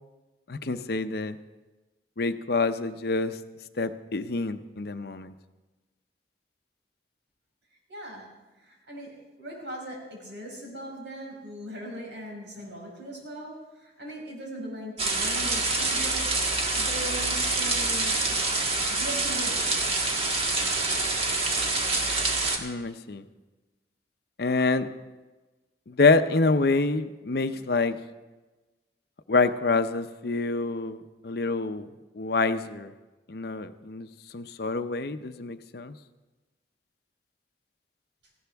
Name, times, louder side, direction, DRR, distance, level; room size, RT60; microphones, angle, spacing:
voice 1, 0.5-1.4 2.2-3.4 3.8-5.3 22.6-23.2 24.4-24.9 25.9-28.0 29.3-31.9 32.2-32.9 33.3-34.1 34.3-36.0, left 3 dB, 60° left, 10 dB, 0.6 m, -26 dB
voice 2, 7.9-8.3 8.6-16.4 16.7-18.2 18.9-19.9, equal, 85° right, -2 dB, 5.3 m, -40 dB
sound 1, 15.0-22.6, right 3 dB, 35° right, 1.5 m, -26 dB
18.5 x 15.5 x 3.5 m, 1.2 s
head